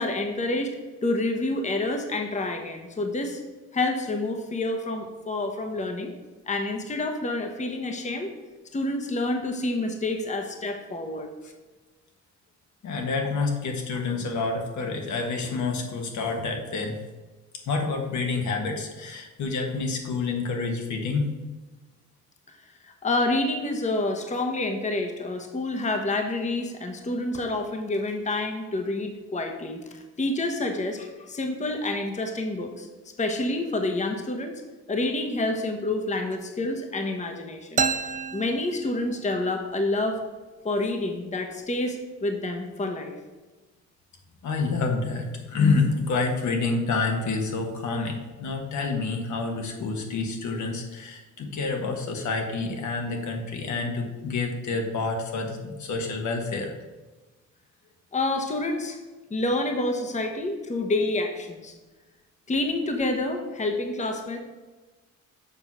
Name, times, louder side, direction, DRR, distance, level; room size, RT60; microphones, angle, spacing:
voice 1, 0.0-3.4 3.7-6.1 6.5-8.3 8.7-11.3 22.8-32.9 33.2-34.6 34.9-37.9 38.3-40.2 40.6-43.1 58.1-59.0 59.3-61.7 62.5-64.4, left 2 dB, 25° left, 4 dB, 1.0 m, -28 dB
voice 2, 12.8-17.0 17.7-21.3 44.4-56.7, left 4 dB, 70° left, 2 dB, 1.4 m, -28 dB
sound 1, 37.8-39.5, right 6 dB, 25° right, 0.4 m, -29 dB
6.9 x 3.9 x 6.0 m, 1.2 s
cardioid pair, 90°, 30 cm